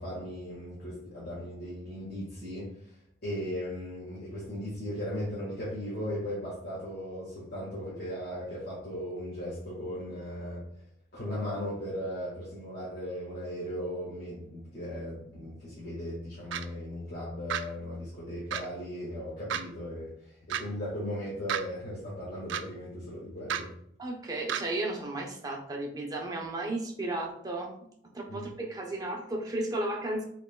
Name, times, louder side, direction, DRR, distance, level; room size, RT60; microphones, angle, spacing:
voice 1, 0.0-3.0 3.2-10.7 11.1-23.7 28.3-28.5, equal, 60° left, -8 dB, 1.7 m, -37 dB
sound 1, 16.5-16.7 17.5-17.6 18.5-18.7 19.5-19.6 20.5-20.6 21.5-21.6 22.5-22.6 23.5-23.6 24.5-24.6, right 9 dB, 80° right, 0.4 m, -31 dB
voice 2, 24.0-27.7 28.1-30.2, right 2 dB, 20° right, 0 dB, 0.8 m, -34 dB
5.5 x 3.8 x 2.3 m, 0.71 s
head